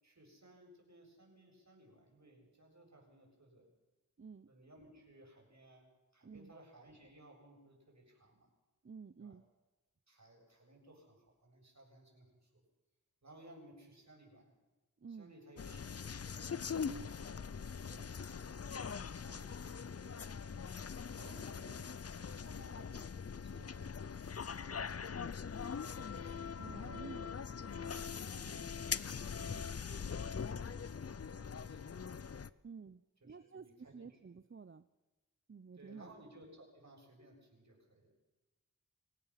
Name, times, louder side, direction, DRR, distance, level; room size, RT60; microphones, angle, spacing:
voice 1, 0.0-3.7 4.5-8.5 9.2-9.4 10.1-12.6 13.2-14.5 15.1-16.2 17.0-17.4 17.6-20.5 20.8-21.9 22.2-24.3 25.5-26.0 26.6-29.3 30.1-32.2 33.2-34.2 35.7-38.1, right 1 dB, 55° right, 0 dB, 7.8 m, -60 dB
voice 2, 4.2-4.5 6.2-6.5 8.8-9.4 15.0-15.3 16.9-17.1 26.6-27.3 29.4-29.8 32.6-34.8 35.5-36.1, right 5 dB, 35° right, 12 dB, 0.7 m, -51 dB
sound 1, 15.6-32.5, left 6 dB, 45° left, 0.6 m, -42 dB
28.0 x 16.0 x 5.9 m, 1.2 s
wide cardioid pair, 65°, 34 cm